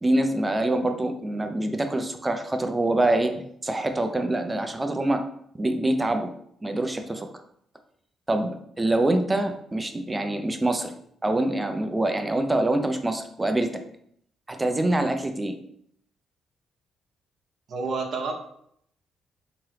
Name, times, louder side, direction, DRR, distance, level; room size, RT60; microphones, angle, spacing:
voice 1, 0.0-5.2 5.5-6.3 6.6-7.3 8.3-10.9 11.2-13.8 14.5-15.5, right 1 dB, 20° right, 6 dB, 0.5 m, -25 dB
voice 2, 17.7-18.3, right 4 dB, 60° right, 3 dB, 0.7 m, -29 dB
3.5 x 3.0 x 3.2 m, 0.68 s
cardioid pair, 90°, 0 cm